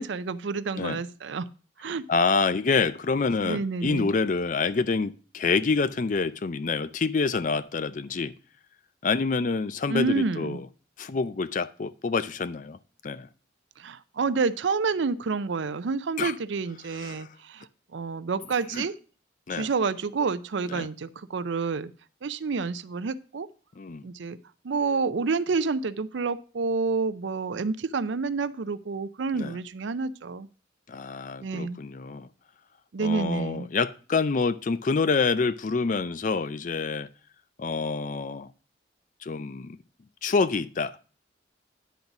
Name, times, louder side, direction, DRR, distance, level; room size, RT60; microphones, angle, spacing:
voice 1, 0.0-1.5 1.8-2.0 3.4-4.1 9.9-10.6 13.8-17.6 17.9-18.9 19.6-21.9 22.2-23.5 24.0-24.4 24.6-30.5 31.4-31.8 32.9-33.7, right 4 dB, 70° right, 0.5 m, -29 dB
voice 2, 2.1-8.3 9.0-10.7 11.0-12.8 13.0-13.3 16.2-16.4 16.8-17.3 18.7-18.9 19.5-19.7 20.7-20.9 23.8-24.1 29.3-29.6 30.9-32.3 33.0-37.1 37.6-38.5 39.2-39.8 40.2-41.0, left 4 dB, 40° left, 0.4 m, -27 dB
10.5 x 4.0 x 5.8 m
head